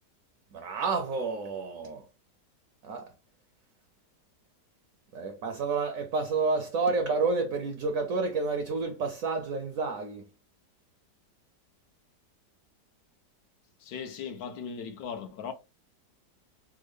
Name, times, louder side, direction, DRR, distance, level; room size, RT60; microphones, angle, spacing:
voice 1, 0.5-2.0 2.8-3.1 5.1-10.2, right 4 dB, 75° right, 0.8 m, -30 dB
voice 2, 13.8-15.5, left 7 dB, 70° left, 1.0 m, -38 dB
3.6 x 2.1 x 3.2 m
omnidirectional pair, 1.9 m